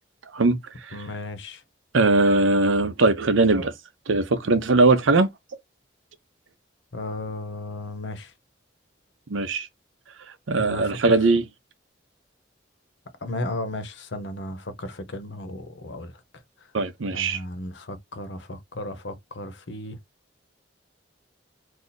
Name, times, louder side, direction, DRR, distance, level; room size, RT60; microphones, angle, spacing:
voice 1, 0.3-1.0 1.9-3.7 4.1-5.3 9.3-9.7 10.5-11.4 16.7-17.4, right 3 dB, 80° right, 0.7 m, -20 dB
voice 2, 0.9-1.6 6.9-8.3 10.6-11.0 13.2-16.2 17.1-20.0, left 1 dB, 65° left, 0.8 m, -35 dB
2.8 x 2.4 x 4.0 m
head